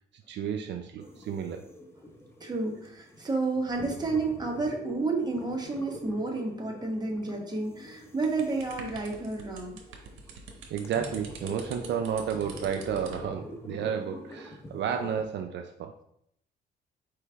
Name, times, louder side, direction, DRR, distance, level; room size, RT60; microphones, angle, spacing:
voice 1, 0.3-1.7 10.7-16.0, right 8 dB, 65° right, 5 dB, 0.4 m, -32 dB
sound 1, 1.0-15.2, left 1 dB, 10° left, 0.7 m, -45 dB
voice 2, 2.4-9.8, right 3 dB, 20° right, 0 dB, 1.2 m, -31 dB
sound 2, 8.2-13.3, right 4 dB, 90° right, 0.8 m, -46 dB
4.7 x 3.2 x 3.4 m, 0.72 s
cardioid pair, 90°, 20 cm